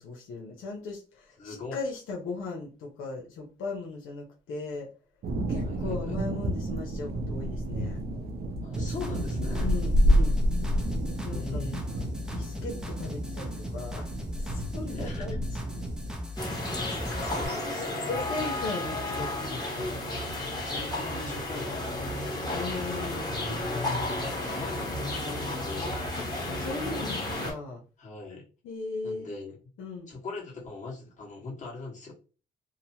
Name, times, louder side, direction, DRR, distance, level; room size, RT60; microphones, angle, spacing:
voice 1, 0.0-4.9 5.5-8.0 9.6-10.4 11.2-11.6 12.3-14.1 14.4-15.5 17.6-20.1 22.5-24.0 26.2-26.3 26.6-27.8 28.6-29.3 29.8-30.1, left 3 dB, 85° left, -1 dB, 0.7 m, -38 dB
voice 2, 1.4-1.8 5.6-6.2 8.6-9.8 11.2-11.8 14.8-15.4 17.2-18.3 20.6-22.2 23.9-26.1 28.0-28.5 29.0-29.6 30.1-32.1, left 3 dB, 40° left, -4 dB, 1.4 m, -41 dB
sound 1, 5.2-16.2, equal, 55° right, 0.7 m, -29 dB
sound 2, 8.7-17.5, equal, 5° right, 0.6 m, -37 dB
sound 3, 16.4-27.5, left 1 dB, 20° left, 1.1 m, -32 dB
2.9 x 2.0 x 2.8 m, 0.35 s
cardioid pair, 90°, 20 cm